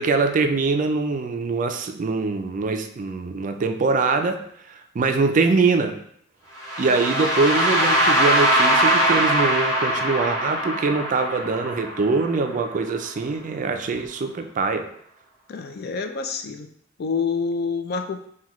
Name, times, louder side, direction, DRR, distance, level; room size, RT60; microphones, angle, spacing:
voice 1, 0.0-4.4 4.7-6.0 6.8-14.9, right 4 dB, 40° right, 6 dB, 0.4 m, -23 dB
sound 1, 6.6-12.5, right 1 dB, 15° left, 1.0 m, -21 dB
voice 2, 15.5-16.7 17.0-18.3, left 5 dB, 55° left, 7 dB, 0.4 m, -27 dB
5.7 x 2.3 x 3.0 m, 0.68 s
head